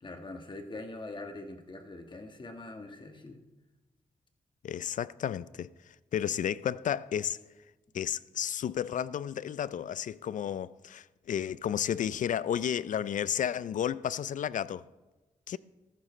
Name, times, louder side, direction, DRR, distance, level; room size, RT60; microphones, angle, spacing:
voice 1, 0.0-3.4, left 2 dB, 35° left, 1.4 m, -43 dB
voice 2, 4.6-5.7 6.1-7.4 7.9-14.8 15.5-15.6, left 9 dB, 65° left, 0.4 m, -32 dB
15.0 x 14.0 x 3.2 m
cardioid pair, 85°, 14 cm